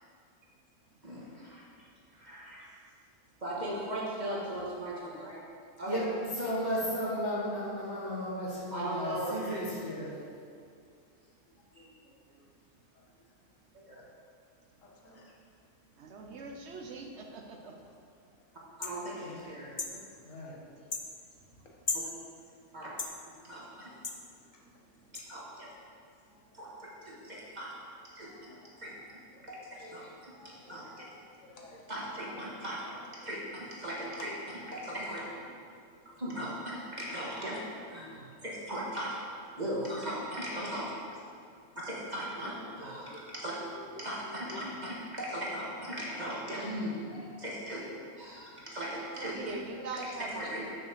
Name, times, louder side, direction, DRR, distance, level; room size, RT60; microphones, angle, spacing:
voice 1, 1.0-1.6 2.1-2.8 3.4-5.4 5.8-6.0 6.4-6.5 8.7-9.6 11.8-11.9 13.9-14.0 18.8-19.8 21.9-22.1 22.7-22.9 23.4-23.9 25.3-25.7 26.5-27.7 28.1-28.5 28.8-28.9 29.4-29.6 29.9-31.0 31.9-32.8 33.2-34.3 34.7-35.3 36.2-37.6 37.9-39.2 39.6-40.9 41.7-43.6 44.0-47.0 47.4-47.8 48.2-49.4 50.0-50.6, right 1 dB, 35° right, -5 dB, 1.7 m, -38 dB
voice 2, 5.9-10.2 19.2-19.4 20.2-20.6, equal, 65° left, -6 dB, 2.1 m, -34 dB
voice 3, 11.7-12.5 12.9-13.1 14.8-15.3 18.9-19.2 19.5-20.2 20.8-21.9 22.5-22.9 23.5-23.6 23.9-25.1 26.3-26.6 27.1-27.3 27.6-27.8 28.3-32.4 32.8-33.4 33.9-35.1 35.7-36.1 37.3-37.6 38.0-38.8 40.4-40.8 41.4-41.7 42.6-45.0 45.6-46.0 46.5-46.6 47.1-47.4 48.3-48.8 49.5-49.9, left 2 dB, 80° left, -2 dB, 1.7 m, -54 dB
voice 4, 16.0-17.7 49.1-50.8, right 3 dB, 60° right, 2 dB, 1.0 m, -42 dB
sound 1, 18.8-19.0 19.8-20.0 20.9-21.1 21.9-22.1 23.0-23.2 24.0-24.2 25.1-25.3, left 4 dB, 40° left, 0.3 m, -34 dB
6.2 x 6.2 x 6.7 m, 2.3 s
omnidirectional pair, 1.3 m